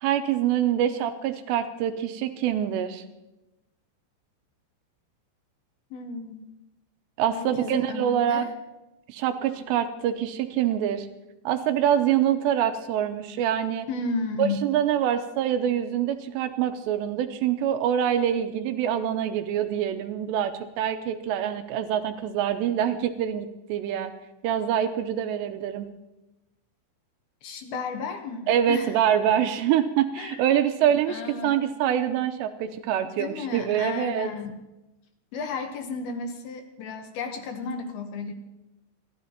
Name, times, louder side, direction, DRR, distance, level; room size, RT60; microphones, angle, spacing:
voice 1, 0.0-3.0 7.2-8.5 9.1-11.1 11.5-13.9 14.4-24.1 24.4-25.9 28.5-34.3, right 10 dB, 80° right, 8 dB, 2.6 m, -25 dB
voice 2, 5.9-6.4 7.3-8.5 13.9-14.6 27.4-29.0 30.2-30.7 31.1-31.6 33.2-34.6 35.3-38.3, left 4 dB, 70° left, 5 dB, 2.5 m, -33 dB
29.0 x 13.0 x 2.9 m, 1.0 s
omnidirectional pair, 5.4 m